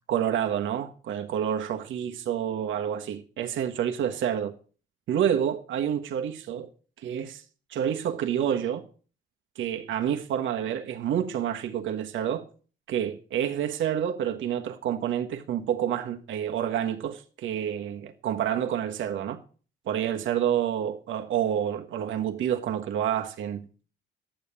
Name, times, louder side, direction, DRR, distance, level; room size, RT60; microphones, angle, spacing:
voice 1, 0.1-4.5 5.1-6.7 7.0-7.4 7.7-8.8 9.5-12.5 12.9-19.4 19.8-23.7, right 9 dB, 75° right, 1.4 m, -28 dB
10.5 x 7.3 x 7.0 m
cardioid pair, 90°, 20 cm